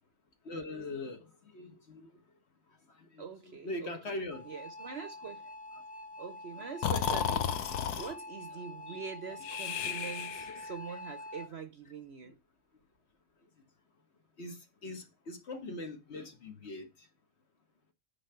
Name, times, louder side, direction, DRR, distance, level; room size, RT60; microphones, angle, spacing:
voice 1, 0.4-2.1 2.9-4.5 8.8-9.0 10.5-10.6 10.9-11.0 12.2-12.4 14.4-17.1, left 2 dB, 50° left, 1.4 m, -42 dB
voice 2, 3.2-4.2 4.4-5.5 6.2-12.4, right 6 dB, 55° right, 0.8 m, -44 dB
sound 1, 4.3-11.5, left 1 dB, 10° left, 0.6 m, -46 dB
Breathing, 6.8-8.1 9.4-10.7, left 8 dB, 90° left, 1.3 m, -33 dB
9.6 x 3.8 x 5.6 m
omnidirectional pair, 1.6 m